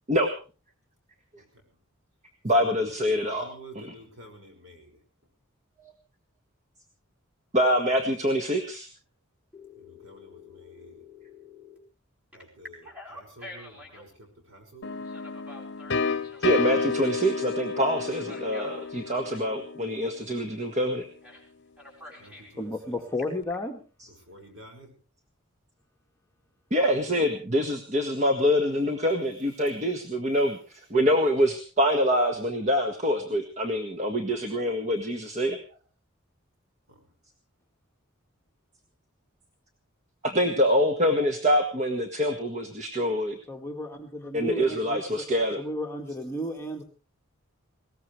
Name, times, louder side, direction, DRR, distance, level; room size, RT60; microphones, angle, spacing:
voice 1, 2.4-3.9 7.5-8.9 16.4-21.1 26.7-35.6 40.2-43.4 44.3-45.6, equal, 35° right, 5 dB, 1.7 m, -25 dB
voice 2, 3.2-4.9 9.8-11.0 12.3-15.0 22.2-22.9 24.1-24.9 36.9-37.1, right 1 dB, 65° right, 4 dB, 6.0 m, -50 dB
Telephone, 9.5-11.8 12.3-14.1 15.0-17.3 18.1-19.5 21.2-21.5 21.8-22.6 23.0-23.5, left 2 dB, 5° right, 4.8 m, -47 dB
sound 1, 14.8-20.5, left 5 dB, 55° left, 0.9 m, -31 dB
voice 3, 22.6-23.8 43.5-45.3 45.6-46.8, left 1 dB, 10° left, 2 dB, 1.8 m, -33 dB
20.5 x 18.5 x 3.3 m, 0.34 s
head